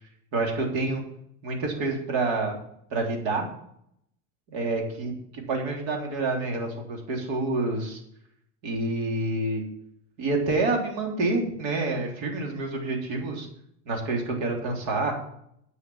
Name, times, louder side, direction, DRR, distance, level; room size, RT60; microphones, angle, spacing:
voice 1, 0.3-1.0 1.4-2.6 2.9-3.5 4.5-8.0 8.6-9.6 10.2-13.5 13.9-15.1, right 2 dB, 70° right, 1 dB, 3.6 m, -28 dB
10.5 x 6.3 x 7.2 m, 0.72 s
supercardioid pair, 115°, 46 cm